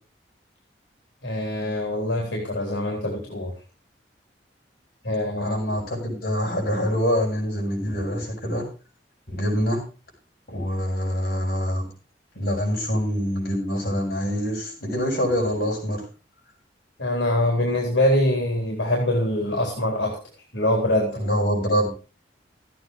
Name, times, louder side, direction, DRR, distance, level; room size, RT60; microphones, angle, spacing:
voice 1, 1.2-3.5 5.0-5.6 17.0-20.2 20.5-21.2, left 1 dB, 80° left, 0 dB, 4.0 m, -24 dB
voice 2, 5.4-8.6 9.3-9.8 10.5-11.9 12.3-16.0 21.2-21.9, equal, 55° left, -1 dB, 7.5 m, -25 dB
14.5 x 9.5 x 4.7 m, 0.34 s
head